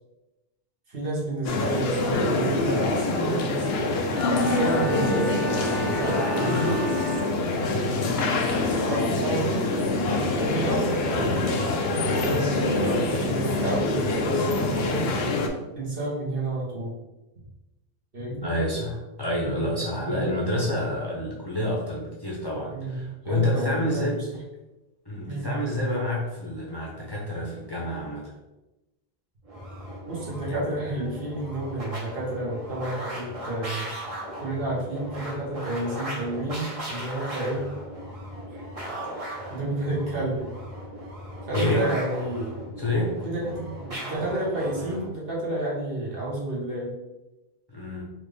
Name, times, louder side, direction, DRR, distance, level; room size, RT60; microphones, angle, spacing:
voice 1, 0.9-3.9 4.4-6.9 8.4-9.5 10.0-11.5 12.2-15.1 15.7-16.9 18.1-18.5 20.0-20.3 22.7-24.1 25.3-25.5 30.1-33.9 34.4-37.7 38.5-38.6 39.1-40.5 41.5-42.5 43.2-46.9, right 2 dB, 65° right, -5 dB, 1.4 m, -30 dB
sound 1, 1.4-15.5, left 2 dB, 75° left, 0.8 m, -25 dB
sound 2, 4.1-8.0, right 3 dB, 10° right, 0.5 m, -35 dB
voice 2, 18.4-24.2 25.1-28.3 30.5-30.6 41.5-41.9 42.8-43.1 47.7-48.0, left 1 dB, 25° left, -4 dB, 0.7 m, -28 dB
sound 3, 29.4-45.1, right 1 dB, 35° right, 1.0 m, -37 dB
4.3 x 2.5 x 3.2 m, 1.0 s
omnidirectional pair, 1.0 m